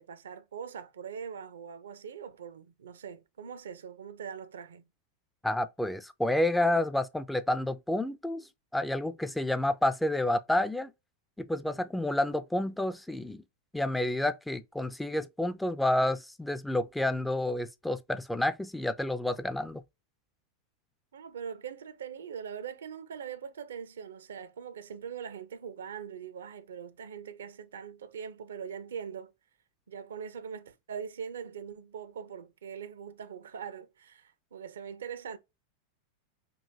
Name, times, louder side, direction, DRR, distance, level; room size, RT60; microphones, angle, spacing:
voice 1, 0.0-4.9 21.1-29.3 29.9-35.4, right 7 dB, 65° right, 0.5 m, -42 dB
voice 2, 5.4-8.4 8.7-10.9 11.4-13.4 13.7-19.8, left 1 dB, 5° left, 0.4 m, -29 dB
5.3 x 2.4 x 2.7 m
figure-of-eight pair, 90°, 0 cm